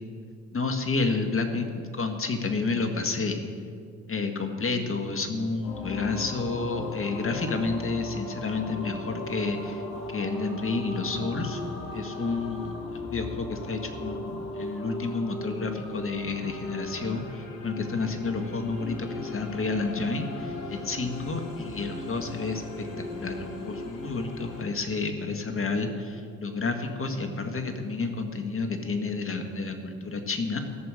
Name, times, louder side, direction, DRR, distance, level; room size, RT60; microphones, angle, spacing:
voice 1, 0.5-3.4 4.1-9.8 10.1-11.6 11.9-30.6, left 3 dB, 35° left, 6 dB, 1.9 m, -30 dB
sound 1, 5.6-24.6, left 2 dB, 85° left, 3.0 m, -38 dB
14.0 x 7.0 x 8.9 m, 2.3 s
hypercardioid pair, 60°, 39 cm